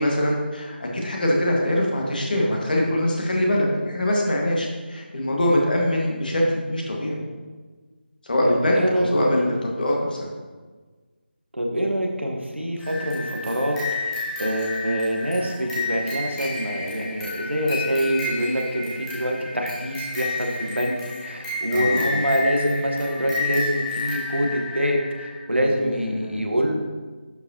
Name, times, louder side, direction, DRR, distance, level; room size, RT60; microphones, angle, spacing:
voice 1, 0.0-7.2 8.2-10.3 21.7-22.2 25.5-25.6 25.9-26.5, left 1 dB, 50° left, -1 dB, 1.7 m, -23 dB
voice 2, 8.4-9.1 11.5-13.8 14.0-26.7, equal, 90° right, 1 dB, 1.4 m, -25 dB
sound 1, 12.8-25.4, left 3 dB, 5° left, 1.1 m, -31 dB
11.0 x 5.0 x 2.9 m, 1.4 s
figure-of-eight pair, 160°, 6 cm